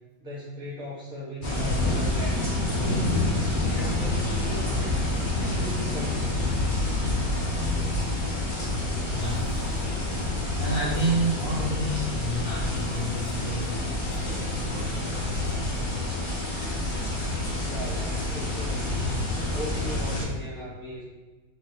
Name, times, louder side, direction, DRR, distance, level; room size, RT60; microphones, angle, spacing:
voice 1, 0.2-3.2 3.7-6.7 17.6-18.9 19.5-21.0, left 1 dB, 5° right, -7 dB, 0.8 m, -38 dB
sound 1, 1.4-20.3, left 2 dB, 35° left, 0.8 m, -28 dB
voice 2, 9.0-9.7 10.2-15.9, right 1 dB, 35° right, -10 dB, 0.9 m, -31 dB
4.2 x 3.0 x 4.0 m, 1.3 s
omnidirectional pair, 2.3 m